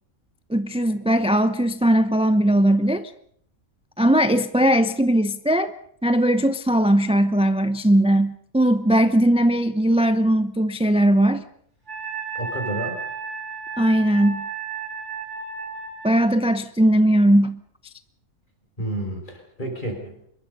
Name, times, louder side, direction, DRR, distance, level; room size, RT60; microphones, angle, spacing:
voice 1, 0.5-3.1 4.0-5.7 6.0-11.4 13.8-14.5 16.0-17.6, right 1 dB, 5° right, 0.5 m, -19 dB
Wind instrument woodwind instrument, 11.9-16.1, right 5 dB, 55° right, 6.2 m, -33 dB
voice 2, 12.3-13.0 18.8-20.1, right 1 dB, 35° left, 5.6 m, -30 dB
25.0 x 22.0 x 5.5 m
omnidirectional pair, 1.5 m